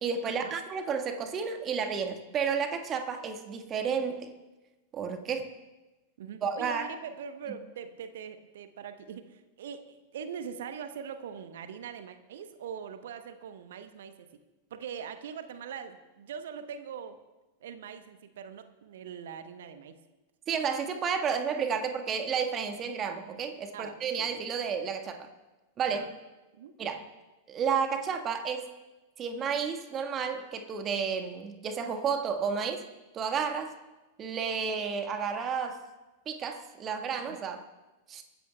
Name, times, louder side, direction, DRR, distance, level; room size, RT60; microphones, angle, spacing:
voice 1, 0.0-4.3 4.9-5.5 6.4-6.9 20.5-25.3 25.8-26.1 26.8-27.0 27.5-28.7 29.2-32.8 33.1-33.8 34.2-35.8 36.2-37.6 38.1-38.2, right 6 dB, 30° right, 6 dB, 1.5 m, -31 dB
voice 2, 6.2-14.3 14.7-17.2 17.6-20.0 23.7-24.3 25.9-26.1 26.5-26.8 37.3-37.4, right 7 dB, 60° right, 10 dB, 0.9 m, -42 dB
24.0 x 14.0 x 2.3 m, 1.1 s
figure-of-eight pair, 90°, 0 cm